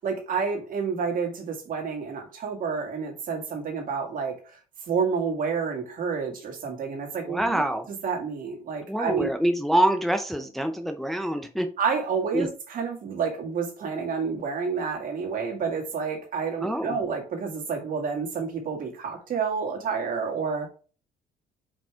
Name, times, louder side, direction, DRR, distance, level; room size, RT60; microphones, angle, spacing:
voice 1, 0.0-4.6 4.9-9.3 11.8-20.7, right 5 dB, 55° right, 2 dB, 2.2 m, -29 dB
voice 2, 7.3-7.9 8.9-11.7 12.3-12.5 16.6-17.0, right 1 dB, ahead, 5 dB, 0.7 m, -25 dB
5.4 x 5.1 x 3.6 m, 0.37 s
cardioid pair, 110°, 17 cm